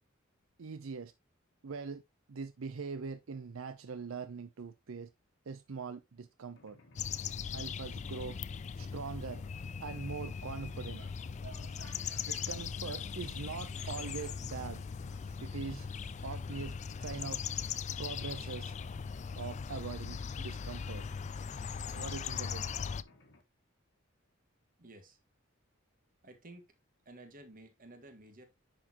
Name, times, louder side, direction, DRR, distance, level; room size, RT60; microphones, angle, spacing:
voice 1, 0.6-1.1 1.6-2.0 2.3-5.1 5.5-6.8 7.5-8.4 8.8-9.4 9.8-11.0 12.2-14.8 15.4-15.9 16.2-16.8 17.0-17.4 18.0-18.7 19.4-21.0 21.9-22.7, right 5 dB, 80° right, 0.6 m, -42 dB
Mechanisms, 6.6-23.4, left 2 dB, 65° left, 1.5 m, -61 dB
sound 1, 7.0-23.0, left 6 dB, 35° left, 0.3 m, -39 dB
sound 2, 10.9-19.8, right 4 dB, 60° right, 2.9 m, -60 dB
voice 2, 24.8-25.2 26.2-26.7 27.0-28.4, right 1 dB, 45° right, 1.6 m, -53 dB
10.0 x 4.4 x 2.9 m
head